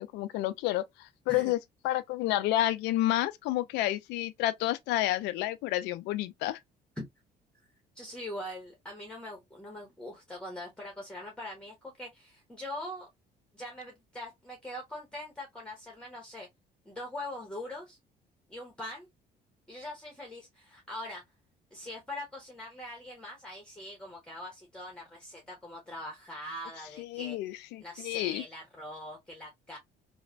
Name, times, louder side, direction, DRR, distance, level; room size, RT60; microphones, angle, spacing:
voice 1, 0.0-1.6 1.8-6.6 27.0-28.4, left 15 dB, 90° left, 0.4 m, -30 dB
voice 2, 7.9-13.1 13.5-16.5 16.8-18.0 18.5-19.1 19.7-21.2 21.7-27.4 27.8-29.8, left 1 dB, 5° left, 0.9 m, -42 dB
3.0 x 2.1 x 2.4 m
cardioid pair, 110°, 17 cm